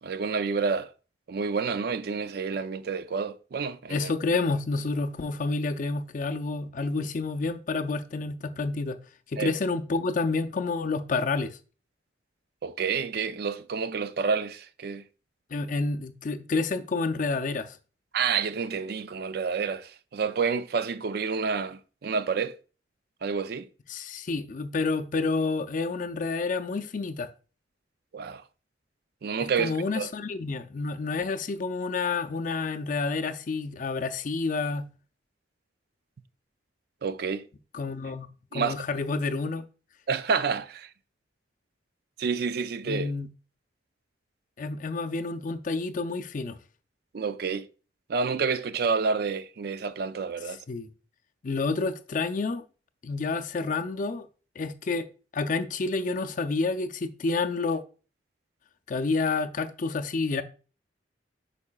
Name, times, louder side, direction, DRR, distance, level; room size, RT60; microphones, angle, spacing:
voice 1, 0.0-0.9 1.3-4.1 9.4-9.5 12.6-15.0 18.1-22.5 23.2-23.7 28.1-28.4 29.2-30.1 37.0-37.5 38.5-38.8 40.1-40.9 42.2-43.1 47.1-47.7 48.1-50.6, right 5 dB, 60° right, 0.4 m, -29 dB
voice 2, 3.9-9.0 9.3-11.6 15.5-17.8 23.9-27.3 29.4-34.9 37.7-38.3 38.5-39.6 42.9-43.3 44.6-46.6 50.7-50.9 51.4-52.6 53.0-54.3 54.6-55.1 55.3-57.8 58.9-60.4, left 3 dB, 45° left, 0.5 m, -29 dB
8.4 x 5.4 x 2.3 m
head